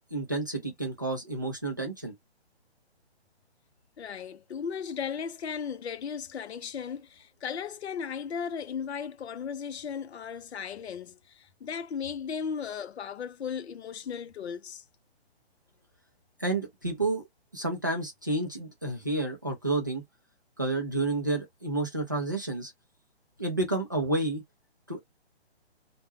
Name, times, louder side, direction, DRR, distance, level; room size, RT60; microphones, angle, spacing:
voice 1, 0.1-2.1 16.4-17.2 17.5-20.0 20.6-22.7 23.4-24.4 24.9-25.0, right 2 dB, 20° right, 0.3 m, -30 dB
voice 2, 4.0-14.8, left 7 dB, 80° left, 0.6 m, -36 dB
2.2 x 2.1 x 3.1 m
hypercardioid pair, 155°, 32 cm